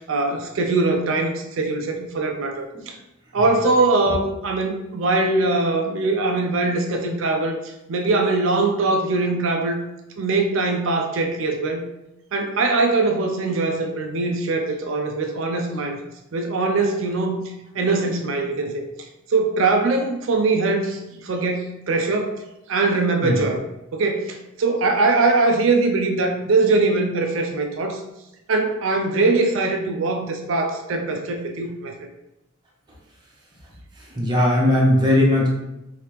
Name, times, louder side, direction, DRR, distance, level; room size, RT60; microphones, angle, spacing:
voice 1, 0.0-3.0 3.3-9.8 10.2-11.8 12.3-16.0 16.3-17.4 17.7-18.9 19.3-22.4 22.7-23.6 23.9-28.0 28.5-31.9, right 3 dB, 65° right, 4 dB, 0.4 m, -22 dB
voice 2, 33.9-35.5, left 1 dB, 20° right, -3 dB, 0.7 m, -19 dB
3.2 x 2.8 x 3.0 m, 0.91 s
head